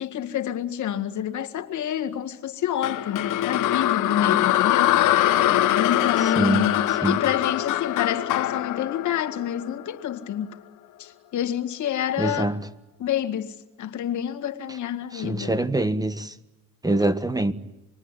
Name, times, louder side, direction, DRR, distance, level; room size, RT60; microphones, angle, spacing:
voice 1, 0.0-5.0 5.8-10.6 11.0-12.6 13.0-15.6, left 10 dB, 75° left, 2.0 m, -28 dB
sound 1, 2.8-10.0, left 13 dB, 90° left, 1.4 m, -23 dB
voice 2, 6.4-6.7 7.0-7.2 12.2-12.6 15.1-16.3 16.8-17.5, right 1 dB, 10° right, 1.6 m, -24 dB
27.5 x 22.0 x 9.9 m
cardioid pair, 90°, 30 cm